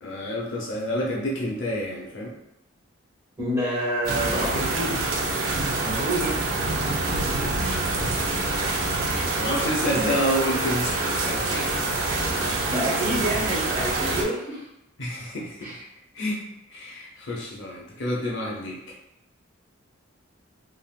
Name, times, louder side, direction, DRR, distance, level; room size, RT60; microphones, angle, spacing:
voice 1, 0.0-2.3 7.9-8.2 8.5-8.7 9.4-11.7 13.1-13.2 15.0-15.8 16.1-16.4 16.7-18.8, equal, 65° left, -4 dB, 0.7 m, -29 dB
voice 2, 3.4-4.9 5.8-6.4 9.9-10.2 12.7-14.6 15.6-15.7, right 1 dB, 15° right, -9 dB, 1.4 m, -27 dB
sound 1, 4.0-14.2, right 2 dB, 80° right, 0.6 m, -26 dB
3.5 x 2.5 x 2.3 m, 0.85 s
head